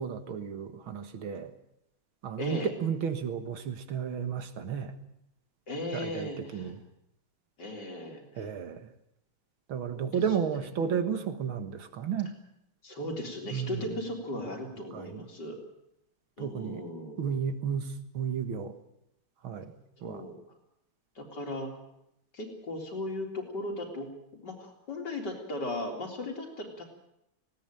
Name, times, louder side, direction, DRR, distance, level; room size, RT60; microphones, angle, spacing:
voice 1, 0.0-1.5 2.2-5.0 5.9-6.8 8.4-8.9 9.7-12.3 13.5-13.9 14.9-15.3 16.4-16.8 17.2-18.8 19.4-20.3, right 7 dB, 75° right, 9 dB, 2.4 m, -33 dB
voice 2, 2.4-2.7 5.7-6.7 7.6-8.5 9.9-11.3 12.8-15.6 16.4-17.3 20.0-20.4 21.2-21.7 22.3-26.9, left 1 dB, 55° left, 2 dB, 4.3 m, -37 dB
19.5 x 17.5 x 9.0 m, 0.80 s
omnidirectional pair, 2.3 m